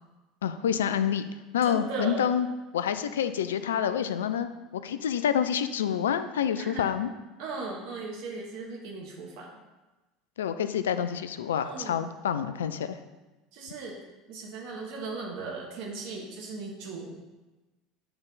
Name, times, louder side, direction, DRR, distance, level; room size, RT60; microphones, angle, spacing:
voice 1, 0.4-1.2 1.5-2.5 2.7-4.5 4.8-7.1 10.4-13.0, left 8 dB, 70° left, 11 dB, 0.3 m, -27 dB
voice 2, 1.6-2.2 6.6-6.8 7.4-9.5 11.6-12.0 13.5-14.0 14.3-17.2, right 4 dB, 55° right, 0 dB, 1.4 m, -37 dB
8.7 x 3.4 x 4.0 m, 1.1 s
figure-of-eight pair, 70°, 0 cm